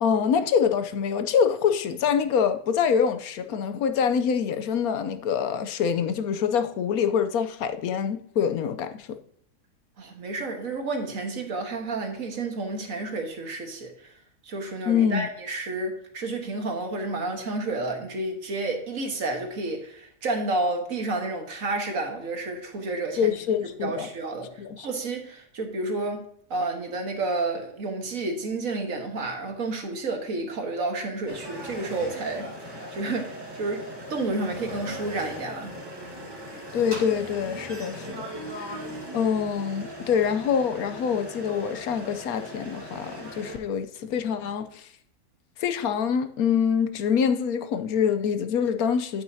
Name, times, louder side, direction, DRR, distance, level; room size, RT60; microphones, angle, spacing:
voice 1, 0.0-9.1 14.9-15.3 23.2-24.1 24.6-24.9 36.7-38.2 38.6-38.7 39.1-44.9 45.6-49.2, left 7 dB, 75° left, 1.1 m, -25 dB
voice 2, 10.0-13.9 14.5-23.4 23.8-32.5 32.9-35.7, right 2 dB, 60° right, 1.7 m, -30 dB
sound 1, 31.3-43.6, equal, 15° right, 1.6 m, -39 dB
8.8 x 8.7 x 2.7 m
omnidirectional pair, 1.6 m